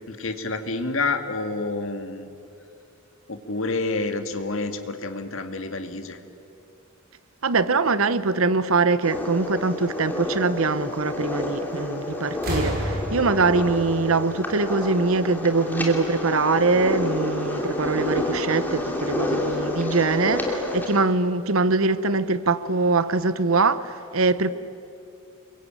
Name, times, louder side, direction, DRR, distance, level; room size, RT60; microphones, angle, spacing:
voice 1, 0.1-2.3 3.3-6.2, left 3 dB, 65° left, 2.1 m, -28 dB
voice 2, 7.4-24.5, right 3 dB, 70° right, 0.9 m, -23 dB
sound 1, 9.0-21.0, left 1 dB, 10° left, 2.9 m, -29 dB
sound 2, 11.7-12.0 12.3-15.1 16.2-16.3, equal, 45° right, 6.9 m, -31 dB
28.5 x 22.5 x 9.0 m
head